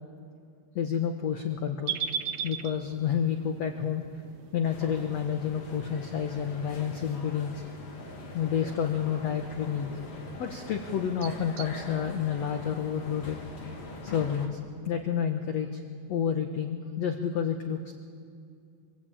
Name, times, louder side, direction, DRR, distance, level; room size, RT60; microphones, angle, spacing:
voice 1, 0.8-2.0 2.4-4.0 4.5-7.6 8.3-10.0 10.4-13.4 14.0-14.6 14.9-15.8 16.1-17.9, left 8 dB, 65° left, 5 dB, 1.8 m, -29 dB
sound 1, 1.9-11.7, right 8 dB, 90° right, 1.6 m, -41 dB
sound 2, 4.6-14.5, left 3 dB, 45° left, 3.3 m, -43 dB
25.0 x 22.0 x 8.8 m, 2.3 s
omnidirectional pair, 4.4 m